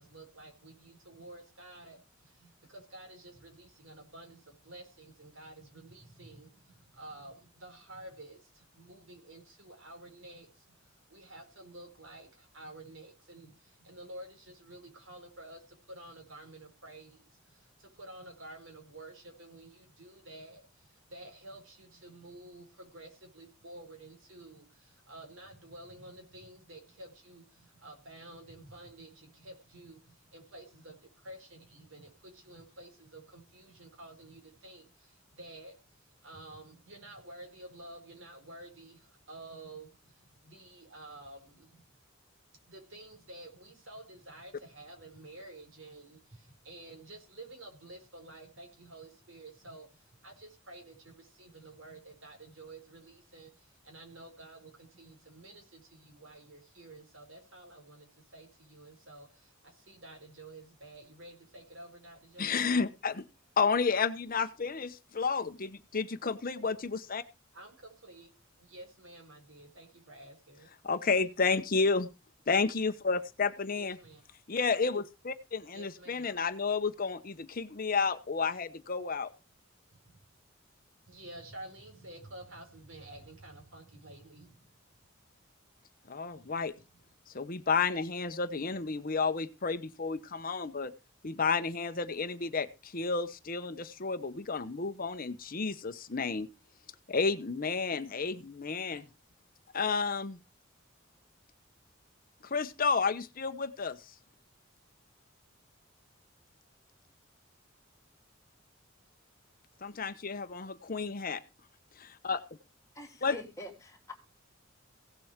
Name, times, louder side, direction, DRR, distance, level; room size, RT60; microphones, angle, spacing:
voice 1, 0.0-41.8 42.7-62.7 67.5-68.3 68.6-70.7 73.8-74.2 75.7-76.4 79.9-80.2 81.1-84.7 86.3-86.4 86.7-86.8, right 1 dB, 70° right, 4.9 m, -51 dB
voice 2, 62.4-63.2 63.6-67.2 70.8-72.1 72.5-74.0 74.5-79.3 86.1-86.7 87.3-90.9 91.2-96.5 97.1-99.1 99.7-100.4 102.4-104.0 109.8-111.4 112.0-112.4 113.2-113.4, left 4 dB, 45° left, 0.8 m, -31 dB
voice 3, 112.9-114.1, left 1 dB, 15° left, 3.1 m, -45 dB
16.5 x 7.6 x 5.0 m
head